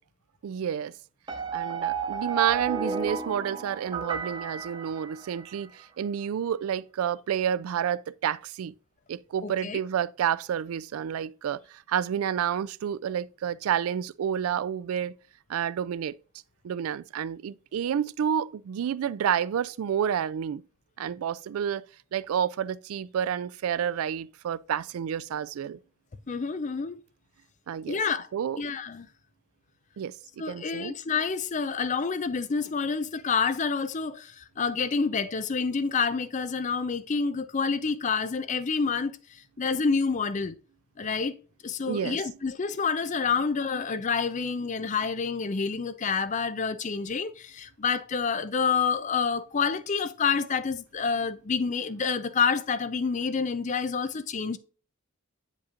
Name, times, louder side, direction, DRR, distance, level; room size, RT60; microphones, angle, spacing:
voice 1, 0.4-0.9 1.5-8.7 9.1-15.2 15.5-16.1 16.6-20.6 21.0-21.9 22.1-25.8 27.7-28.0 28.3-28.6 30.0-30.9 41.9-42.2, right 8 dB, 85° right, 0.3 m, -29 dB
sound 1, 1.3-5.6, right 6 dB, 20° right, 0.7 m, -32 dB
voice 2, 9.4-9.8 26.3-27.0 27.9-28.3 28.6-29.1 30.4-39.2 39.6-40.6 41.0-41.3 41.6-54.6, left 5 dB, 35° left, 0.5 m, -28 dB
8.3 x 5.2 x 2.4 m
head